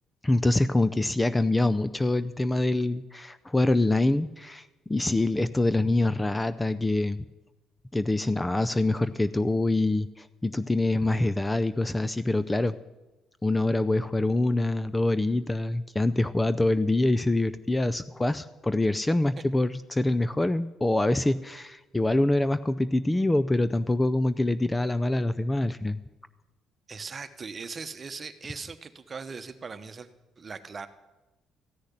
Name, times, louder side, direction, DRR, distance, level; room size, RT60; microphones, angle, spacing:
voice 1, 0.2-7.2 7.9-12.8 13.4-26.0, left 2 dB, 15° left, 14 dB, 0.5 m, -25 dB
voice 2, 26.9-30.1 30.4-30.9, right 5 dB, 35° right, 10 dB, 1.1 m, -39 dB
14.5 x 6.5 x 10.0 m, 1.1 s
supercardioid pair, 80°, 0 cm